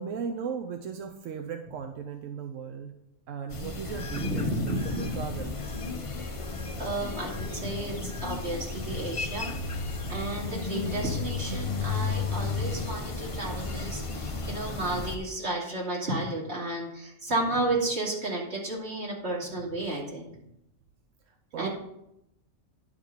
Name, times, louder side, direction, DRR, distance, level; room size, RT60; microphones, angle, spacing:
voice 1, 0.0-2.9 3.3-5.6 21.5-21.7, right 6 dB, 90° right, 5 dB, 1.1 m, -36 dB
sound 1, 3.5-15.2, left 3 dB, 30° left, 0.7 m, -33 dB
voice 2, 4.1-5.3 6.8-20.3 21.6-21.7, right 2 dB, 60° right, -4 dB, 2.9 m, -32 dB
10.5 x 5.1 x 6.6 m, 0.83 s
omnidirectional pair, 1.3 m